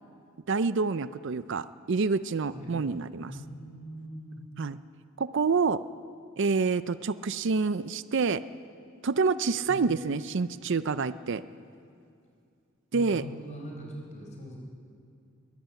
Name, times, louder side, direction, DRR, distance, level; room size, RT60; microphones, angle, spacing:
voice 1, 0.5-3.3 4.6-4.8 5.2-5.8 6.4-8.4 9.0-11.4 12.9-13.2, right 4 dB, 60° right, 14 dB, 0.5 m, -27 dB
voice 2, 3.3-4.5 9.7-9.9 12.9-14.6, equal, 35° left, 0 dB, 4.9 m, -42 dB
22.5 x 14.0 x 9.0 m, 2.5 s
head